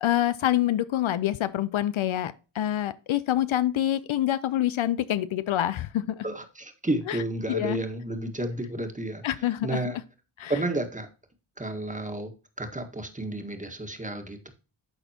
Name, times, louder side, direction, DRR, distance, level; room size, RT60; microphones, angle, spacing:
voice 1, 0.0-6.2 7.1-7.2 7.5-7.8 9.2-9.8 10.4-10.5, left 12 dB, 70° left, 0.6 m, -26 dB
voice 2, 6.2-9.2 9.6-10.0 10.5-11.1 11.6-12.3 12.6-14.5, right 1 dB, 15° right, 1.6 m, -31 dB
12.0 x 4.3 x 2.9 m
cardioid pair, 65°, 49 cm